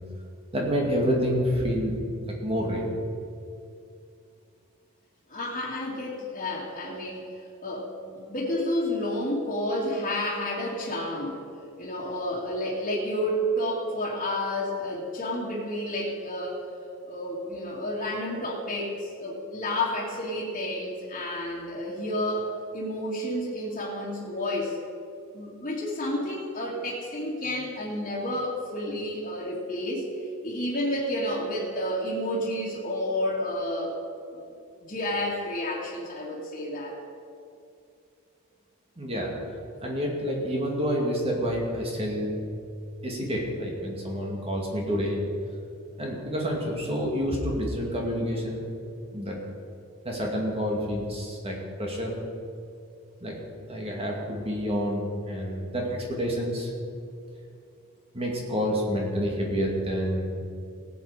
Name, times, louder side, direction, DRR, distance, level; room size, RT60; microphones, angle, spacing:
voice 1, 0.5-3.0 39.0-39.4 39.8-42.3 43.0-45.2 46.0-48.6 49.1-49.4 50.0-52.1 53.2-53.4 53.7-56.7 58.1-60.3, equal, 25° right, -1 dB, 2.2 m, -28 dB
voice 2, 5.3-7.3 7.6-11.4 11.8-16.6 17.1-22.5 22.7-24.8 25.3-30.1 30.4-33.9 34.3-34.5 34.8-37.0, left 1 dB, 35° left, -9 dB, 2.3 m, -30 dB
18.0 x 8.5 x 5.0 m, 2.4 s
head